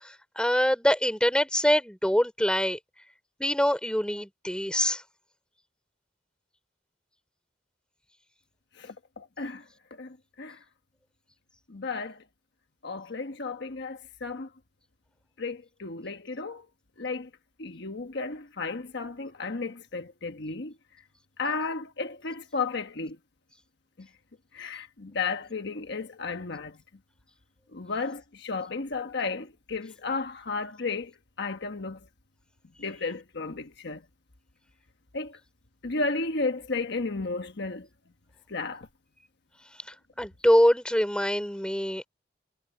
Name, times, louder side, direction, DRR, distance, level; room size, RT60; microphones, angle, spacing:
voice 1, 0.4-2.8 3.4-5.0 40.2-42.1, equal, 5° left, 3.9 m, -24 dB
voice 2, 8.8-9.6 10.0-10.6 11.7-12.2 12.8-14.5 15.4-16.6 17.0-17.3 17.6-20.7 21.4-23.2 24.0-24.1 24.5-26.8 27.7-31.1 31.4-32.0 32.8-34.0 35.1-35.4 35.8-37.9 38.5-38.9, left 4 dB, 60° left, 1.3 m, -33 dB
head